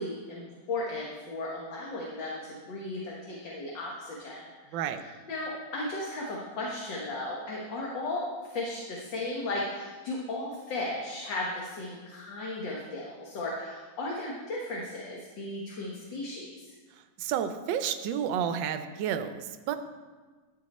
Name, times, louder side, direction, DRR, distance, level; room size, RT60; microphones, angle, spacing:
voice 1, 0.0-16.7, left 2 dB, 60° left, -3 dB, 1.8 m, -36 dB
voice 2, 17.2-19.8, right 8 dB, 70° right, 9 dB, 1.3 m, -31 dB
12.0 x 6.6 x 4.2 m, 1.4 s
omnidirectional pair, 2.3 m